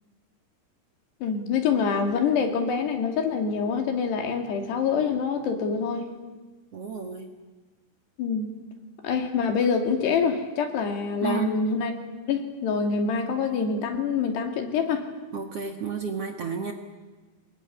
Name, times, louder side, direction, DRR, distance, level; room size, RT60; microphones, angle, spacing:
voice 1, 1.2-6.1 8.2-8.6 9.0-11.9 12.3-15.1, left 5 dB, 85° left, 5 dB, 4.7 m, -26 dB
voice 2, 6.7-7.3 11.2-11.6 15.3-16.7, right 6 dB, 50° right, 4 dB, 1.9 m, -31 dB
26.5 x 20.5 x 9.9 m, 1.3 s
omnidirectional pair, 4.7 m